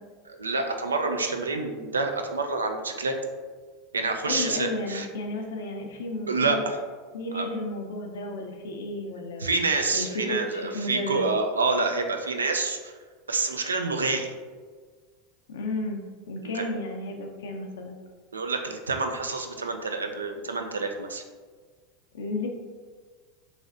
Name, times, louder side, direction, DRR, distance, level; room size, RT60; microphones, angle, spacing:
voice 1, 0.3-3.2 3.9-5.1 6.3-6.8 7.3-7.5 9.4-12.9 13.3-14.3 16.5-16.6 18.3-21.2, right 3 dB, 90° right, 4 dB, 0.3 m, -27 dB
voice 2, 4.2-6.6 7.1-9.6 9.9-11.3 15.5-18.0 22.1-22.5, left 2 dB, 70° left, 2 dB, 0.4 m, -33 dB
3.2 x 2.6 x 2.4 m, 1.5 s
hypercardioid pair, 90°, 0 cm